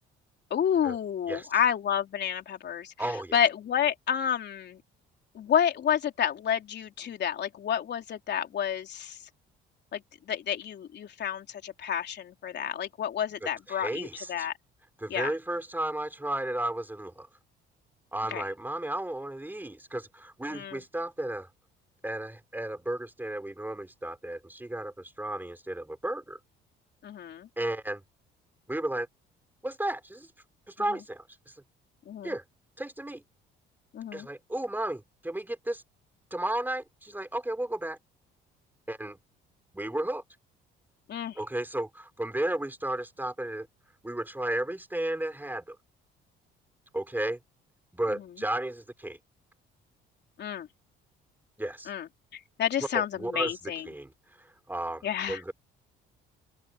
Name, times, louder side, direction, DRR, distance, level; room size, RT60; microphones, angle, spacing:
voice 1, 0.5-2.9 3.3-4.8 5.4-9.2 9.9-14.5 15.1-15.3 18.3-18.4 20.5-20.8 27.0-27.5 32.1-32.3 33.9-34.3 41.1-41.4 50.4-50.7 51.9-53.9 55.0-55.4, left 9 dB, 55° left, 3.6 m, -30 dB
voice 2, 3.0-3.4 13.4-14.5 15.0-17.3 18.1-21.5 22.0-26.4 27.6-28.0 28.7-29.1 29.6-30.3 30.7-31.5 32.2-32.4 32.8-33.2 34.1-35.8 36.3-38.0 38.9-39.2 39.7-40.2 41.4-43.7 44.0-45.8 46.9-47.4 47.9-49.2 51.6-51.9 52.9-53.6 53.8-54.1 54.4-55.5, right 1 dB, 10° right, 3.8 m, -33 dB
open air
supercardioid pair, 85°, 21 cm